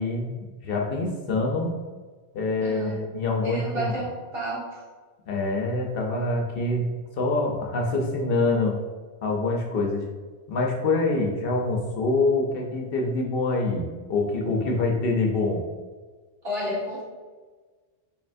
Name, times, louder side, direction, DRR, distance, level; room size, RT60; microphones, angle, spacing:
voice 1, 0.0-1.7 2.3-3.9 5.3-8.8 9.2-10.1 10.5-15.6, left 2 dB, 65° left, 0 dB, 0.8 m, -25 dB
voice 2, 2.6-3.0 3.4-4.8 16.4-17.0, equal, 65° right, -7 dB, 1.7 m, -31 dB
4.4 x 3.2 x 2.5 m, 1.4 s
omnidirectional pair, 1.1 m